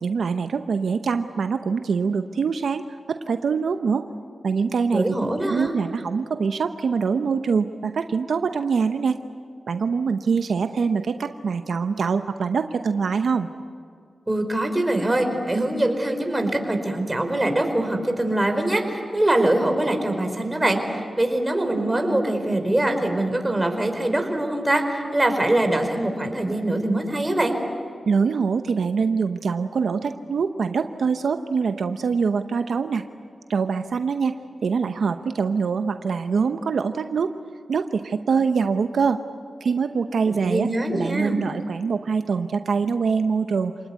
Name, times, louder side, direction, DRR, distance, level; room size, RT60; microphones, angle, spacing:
voice 1, 0.0-4.1 4.4-5.1 5.5-9.2 9.7-13.5 28.1-33.0 33.5-34.4 34.6-37.4 37.7-39.2 39.6-43.7, right 5 dB, 80° right, 8 dB, 0.8 m, -24 dB
voice 2, 4.9-5.7 14.3-27.5 40.3-41.4, right 1 dB, 20° right, 5 dB, 4.7 m, -23 dB
28.5 x 19.5 x 9.7 m, 2.1 s
cardioid pair, 50°, 0 cm